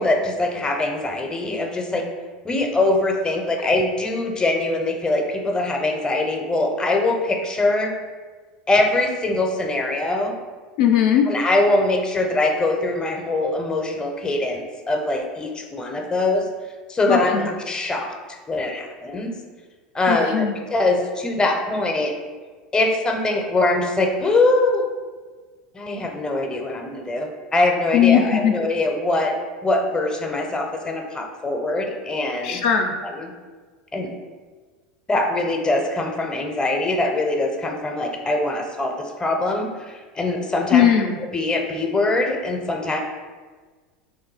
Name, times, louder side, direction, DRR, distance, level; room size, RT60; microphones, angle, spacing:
voice 1, 0.0-2.0 2.4-7.9 8.7-10.4 11.3-16.5 16.9-19.3 19.9-22.1 22.7-24.8 25.7-29.3 29.6-32.6 33.1-33.3 33.9-34.1 35.1-40.8 41.3-43.0, left 2 dB, 15° left, 3 dB, 0.6 m, -22 dB
voice 2, 10.8-11.3 17.1-17.5 20.1-20.5 27.9-28.5 32.4-32.9 40.7-41.2, left 9 dB, 65° left, 3 dB, 0.4 m, -18 dB
3.1 x 2.6 x 3.9 m, 1.4 s
hypercardioid pair, 85°, 5 cm